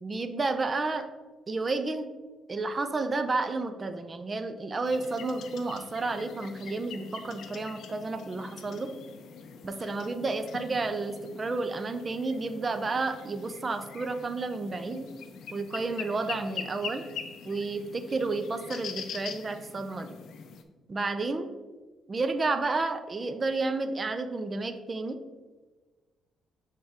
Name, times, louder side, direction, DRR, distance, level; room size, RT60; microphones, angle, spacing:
voice 1, 0.0-1.1 1.5-2.1 2.5-8.9 9.6-15.1 15.5-17.0 17.4-20.1 20.9-21.5 22.1-25.2, right 3 dB, 35° right, 9 dB, 0.6 m, -31 dB
sound 1, 4.8-20.6, left 7 dB, 75° left, 0.5 m, -44 dB
7.7 x 3.6 x 3.6 m, 1.3 s
supercardioid pair, 65°, 0 cm